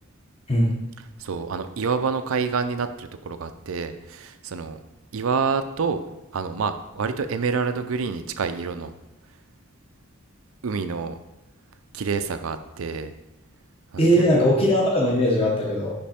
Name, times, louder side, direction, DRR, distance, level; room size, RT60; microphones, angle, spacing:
voice 1, 1.2-4.8 5.1-6.0 6.3-8.9 10.6-11.2 11.9-13.1 13.9-14.3, right 5 dB, 85° right, 10 dB, 0.5 m, -27 dB
voice 2, 14.0-15.9, equal, 30° left, -3 dB, 0.8 m, -20 dB
5.4 x 5.2 x 4.3 m, 0.91 s
head